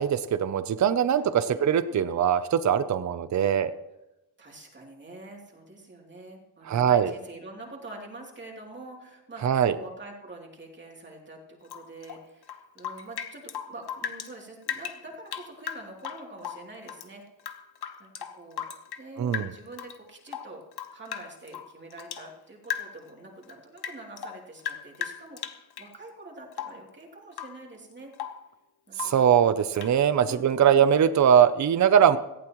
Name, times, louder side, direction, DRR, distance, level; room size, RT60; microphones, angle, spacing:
voice 1, 0.0-3.7 6.7-7.1 9.4-9.7 19.2-19.5 29.0-32.2, right 8 dB, 45° right, 13 dB, 0.6 m, -21 dB
voice 2, 1.5-2.1 4.4-17.2 18.0-18.6 19.0-20.6 20.9-28.1 28.9-29.5 30.2-30.9, right 2 dB, 30° right, -1 dB, 3.0 m, -45 dB
Rain / Drip, 11.7-14.3 14.6-17.1 17.4-19.1 19.3-20.0 20.3-22.3 22.6-23.1 23.4-25.9 26.5-26.9 27.3-27.6 27.9-28.5 28.9-29.3 29.8-30.0, left 9 dB, 70° left, 1.1 m, -37 dB
18.0 x 15.5 x 3.1 m, 0.93 s
wide cardioid pair, 160°, 40 cm